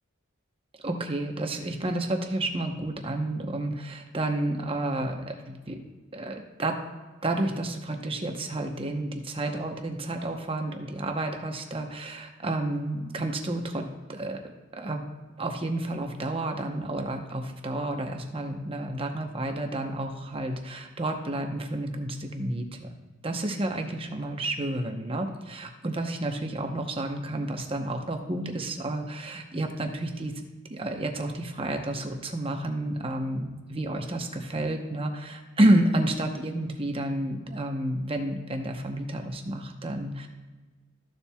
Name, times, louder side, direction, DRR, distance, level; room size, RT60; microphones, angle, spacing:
voice 1, 0.8-5.8 6.1-6.8 7.2-14.4 14.8-15.1 15.4-22.9 23.2-30.3 30.7-40.3, right 1 dB, 25° right, 4 dB, 0.9 m, -30 dB
14.0 x 7.1 x 2.3 m, 1.3 s
head